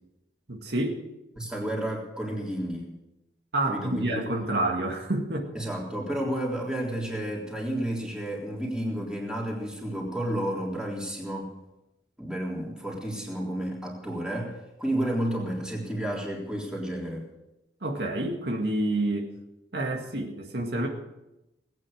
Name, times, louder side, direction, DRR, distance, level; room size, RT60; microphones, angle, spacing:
voice 1, 0.5-1.0 3.5-5.5 17.8-19.3 19.7-20.9, right 1 dB, 70° right, 1 dB, 2.1 m, -28 dB
voice 2, 1.4-2.9 3.7-4.2 5.6-11.5 12.2-17.3, right 1 dB, 5° right, -3 dB, 3.6 m, -31 dB
19.0 x 9.2 x 6.6 m, 0.94 s
head